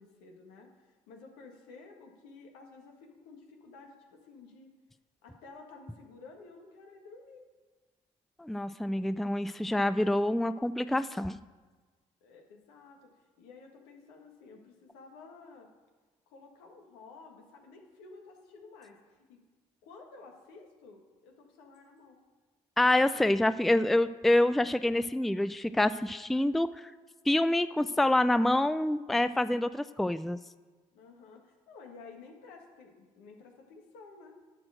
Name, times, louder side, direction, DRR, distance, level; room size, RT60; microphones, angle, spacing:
voice 1, 0.0-4.7 5.2-7.5 12.2-13.1 13.4-15.7 16.3-19.0 19.3-19.4 19.8-22.2 30.9-34.4, left 4 dB, 80° left, 2 dB, 1.6 m, -52 dB
voice 2, 8.4-11.4 22.8-26.9 27.3-30.4, left 1 dB, ahead, 13 dB, 0.4 m, -27 dB
11.0 x 4.4 x 7.8 m, 1.4 s
hypercardioid pair, 50°, 16 cm